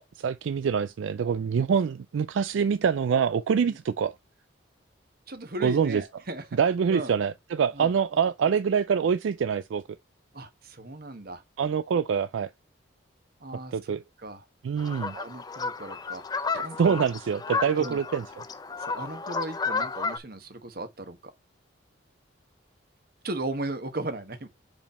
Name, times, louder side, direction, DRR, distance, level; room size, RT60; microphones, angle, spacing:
voice 1, 0.2-4.1 5.6-6.0 6.6-9.8 11.6-12.5 13.7-14.0 14.6-15.2 16.5-18.3, right 6 dB, 75° right, 0.3 m, -25 dB
voice 2, 5.3-6.5 6.9-7.1 7.7-8.0 10.3-11.4 13.4-14.4 15.1-17.0 17.8-18.0 18.8-21.2 23.2-24.5, right 2 dB, 50° right, 1.2 m, -37 dB
sound 1, 14.8-20.2, left 4 dB, 20° left, 0.5 m, -32 dB
5.3 x 5.1 x 4.2 m
head